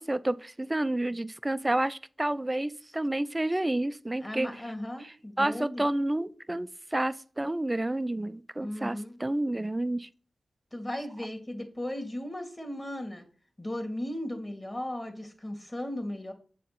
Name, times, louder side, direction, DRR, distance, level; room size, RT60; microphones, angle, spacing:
voice 1, 0.0-4.5 5.4-10.1, right 1 dB, 20° right, 0.5 m, -30 dB
voice 2, 4.2-5.8 8.6-9.2 10.7-13.2 13.6-16.3, left 1 dB, 25° left, 2.0 m, -36 dB
7.3 x 4.2 x 4.2 m
cardioid pair, 45°, 0 cm